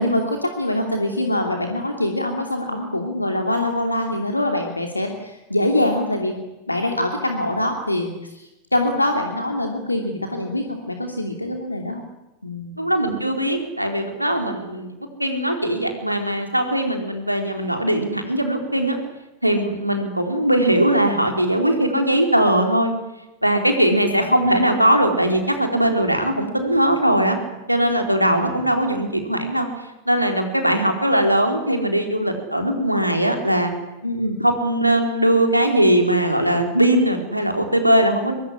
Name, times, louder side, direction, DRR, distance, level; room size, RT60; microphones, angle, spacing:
voice 1, 0.0-12.0 12.4-12.7 23.9-24.1 28.4-28.6 34.0-34.4, left 1 dB, 85° left, 3 dB, 2.8 m, -24 dB
voice 2, 12.8-14.9 15.2-19.0 19.4-22.9 23.4-27.4 27.7-29.7 30.1-33.7 34.4-38.4, right 1 dB, 90° right, 4 dB, 4.3 m, -20 dB
24.0 x 22.0 x 10.0 m, 0.97 s
figure-of-eight pair, 90°, 0 cm